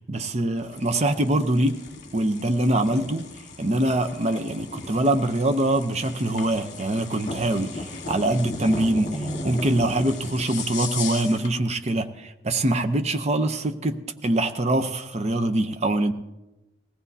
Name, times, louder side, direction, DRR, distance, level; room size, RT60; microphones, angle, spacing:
voice 1, 0.1-1.8 2.1-3.3 3.6-16.1, right 1 dB, 40° right, 0.7 m, -24 dB
sound 1, 0.6-11.6, left 3 dB, 45° left, 1.5 m, -37 dB
20.5 x 15.5 x 2.8 m
head